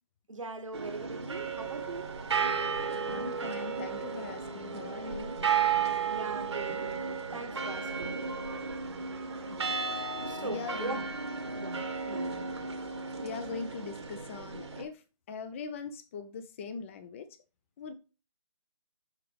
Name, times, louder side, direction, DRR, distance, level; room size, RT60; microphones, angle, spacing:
voice 1, 0.3-2.1 6.1-8.2 10.2-11.0 11.5-12.2, right 3 dB, 70° right, 1.2 m, -40 dB
sound 1, 0.7-14.8, right 6 dB, 55° right, 1.1 m, -34 dB
voice 2, 3.0-5.3 9.5-9.7 10.4-11.0 12.1-12.3 13.2-17.3 17.8-18.0, left 5 dB, 25° left, 0.6 m, -41 dB
5.9 x 5.7 x 3.3 m
figure-of-eight pair, 145°, 17 cm